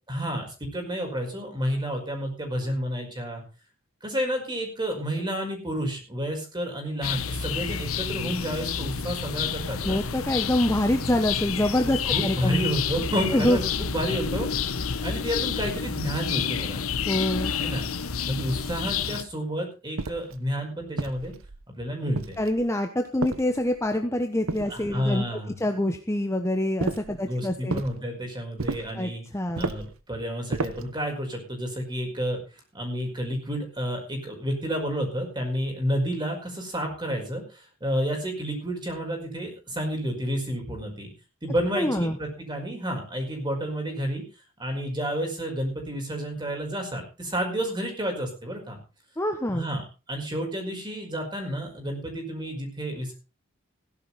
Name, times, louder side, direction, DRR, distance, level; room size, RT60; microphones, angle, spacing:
voice 1, 0.1-3.4 4.0-10.0 12.1-14.5 15.0-16.8 17.6-17.9 18.2-21.3 21.8-22.4 24.7-25.6 27.1-29.2 29.5-32.4 32.7-41.1 41.4-44.2 44.6-48.8 49.5-49.8 50.1-53.1, equal, 20° right, 2 dB, 5.3 m, -30 dB
sound 1, 7.0-19.2, left 6 dB, 90° left, 1.0 m, -29 dB
voice 2, 9.8-12.6 13.3-13.6 17.1-17.5 22.4-25.3 25.6-27.8 29.0-29.7 41.8-42.2 49.2-49.6, left 1 dB, 15° left, 5 dB, 1.1 m, -25 dB
sound 2, 20.0-20.4 21.0-21.6 22.1-22.7 23.2-23.9 24.5-25.2 26.8-27.2 27.7-28.0 28.6-29.0 29.6-30.0 30.5-30.9, right 3 dB, 85° right, 1.0 m, -33 dB
16.5 x 11.0 x 4.2 m, 0.32 s
head